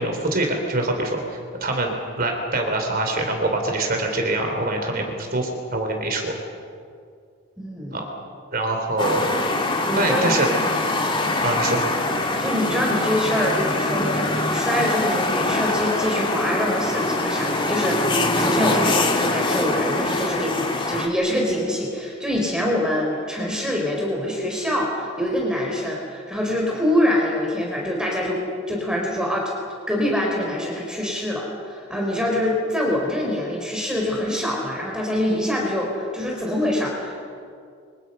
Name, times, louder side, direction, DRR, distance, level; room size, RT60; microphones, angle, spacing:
voice 1, 0.0-6.4 7.9-8.0 8.5-9.7 10.0-10.5 11.4-11.8, right 2 dB, 45° right, 3 dB, 3.7 m, -24 dB
voice 2, 7.6-8.0 9.9-10.4 12.4-29.5 29.9-37.2, left 1 dB, 5° right, -2 dB, 4.3 m, -25 dB
sound 1, 9.0-21.1, left 2 dB, 25° left, 2.2 m, -23 dB
28.5 x 25.5 x 5.7 m, 2.3 s
head